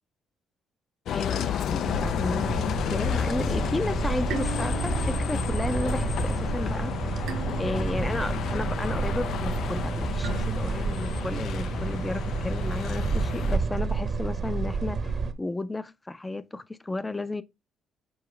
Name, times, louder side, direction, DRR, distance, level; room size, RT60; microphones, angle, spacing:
Bus, 1.1-13.6, left 9 dB, 70° left, 0.4 m, -31 dB
voice 1, 1.1-7.0 7.6-17.4, left 2 dB, 15° left, 0.5 m, -33 dB
sound 1, 1.8-15.3, right 4 dB, 45° right, 0.9 m, -30 dB
sound 2, 4.3-6.7 7.3-9.3 10.2-11.8, right 11 dB, 80° right, 0.7 m, -42 dB
7.0 x 4.6 x 3.2 m
cardioid pair, 110°, 0 cm